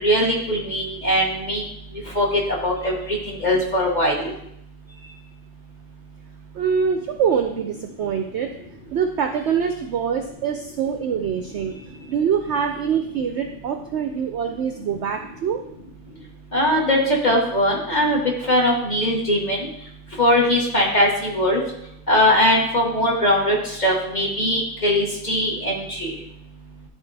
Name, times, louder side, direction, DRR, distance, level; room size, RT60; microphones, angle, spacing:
voice 1, 0.0-1.6 2.1-2.3 2.6-3.0 3.4-4.3 16.5-18.2 18.5-19.6 20.2-21.6 22.1-26.1, equal, 30° left, -2 dB, 1.5 m, -20 dB
voice 2, 6.5-8.5 8.9-15.6, right 7 dB, 65° right, 6 dB, 0.7 m, -24 dB
11.5 x 4.0 x 3.3 m, 0.77 s
omnidirectional pair, 1.6 m